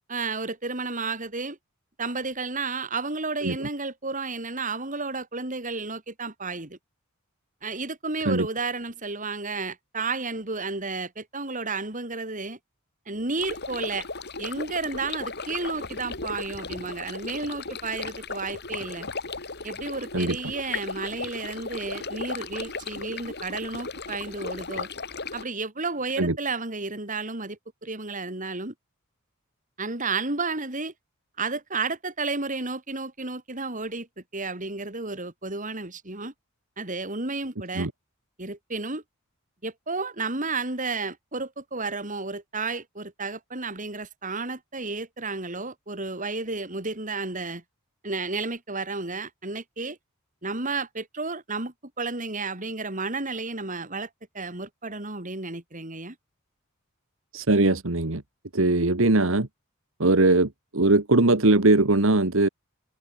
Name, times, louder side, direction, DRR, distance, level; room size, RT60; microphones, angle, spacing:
voice 1, 0.1-1.6 2.0-6.8 7.6-12.6 13.1-14.1 14.4-19.1 19.6-24.9 25.3-28.7 29.8-30.9 31.4-34.1 34.3-36.3 36.8-37.9 38.4-39.0 39.6-47.6 48.0-50.0 50.4-54.1 54.3-56.2, right 3 dB, 35° right, 4.1 m, -32 dB
sound 1, 13.4-25.4, left 4 dB, 50° left, 4.9 m, -36 dB
voice 2, 57.3-58.2 58.5-59.5 60.0-62.5, right 2 dB, 65° right, 1.6 m, -21 dB
head